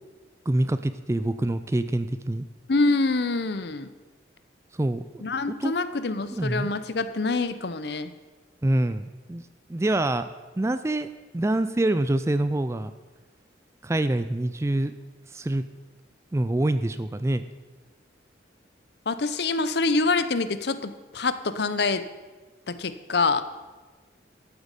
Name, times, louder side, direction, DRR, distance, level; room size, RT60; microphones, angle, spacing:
voice 1, 0.5-2.5 4.7-5.3 5.6-5.7 6.3-6.7 8.6-9.4 9.7-10.3 10.6-11.1 11.3-12.9 13.8-14.9 15.3-15.6 16.3-17.4, right 1 dB, 15° right, 12 dB, 0.3 m, -25 dB
voice 2, 2.7-3.9 5.2-8.1 19.1-22.0 22.7-23.4, left 3 dB, 60° left, 12 dB, 0.7 m, -25 dB
13.0 x 8.1 x 5.3 m, 1.3 s
head